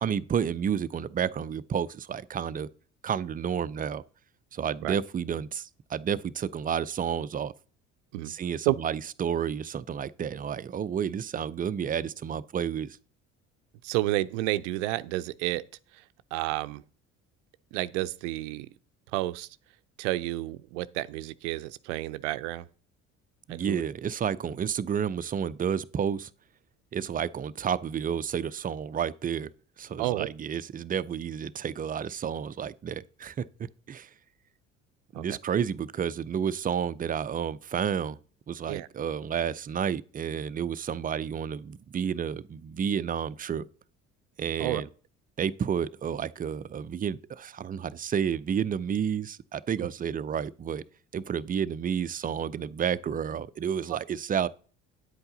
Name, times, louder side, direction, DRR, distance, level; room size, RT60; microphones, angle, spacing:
voice 1, 0.0-2.7 3.0-4.0 4.5-7.5 8.2-13.0 23.5-26.3 26.9-29.5 29.8-33.5 33.9-34.1 35.2-38.2 38.5-43.7 44.4-44.9 45.4-50.8 51.1-54.5, right 8 dB, 25° right, 0.5 m, -30 dB
voice 2, 13.8-15.6 15.9-16.0 16.3-16.8 17.7-18.7 19.1-19.5 20.0-22.7 23.5-23.8 30.0-30.3 35.1-35.2 38.7-38.9 44.6-44.8 49.8-49.9, right 17 dB, 70° right, 0.6 m, -30 dB
9.6 x 7.9 x 3.9 m
hypercardioid pair, 55°, 37 cm